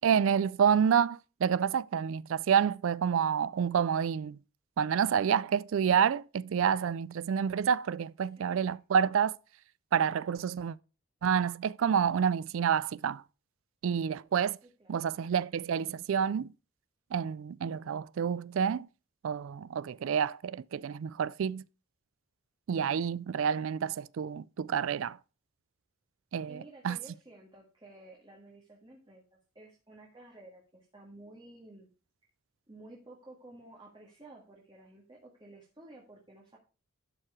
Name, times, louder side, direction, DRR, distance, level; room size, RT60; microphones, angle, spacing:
voice 1, 0.0-4.4 4.8-9.4 9.9-10.8 11.2-13.2 13.8-14.6 14.9-16.5 17.1-18.9 19.2-21.6 22.7-25.2 26.3-27.0, right 7 dB, 65° right, 0.3 m, -28 dB
voice 2, 8.4-8.7 14.6-15.2 26.5-31.9 32.7-36.6, right 2 dB, 20° right, 1.7 m, -53 dB
12.0 x 4.6 x 4.8 m
head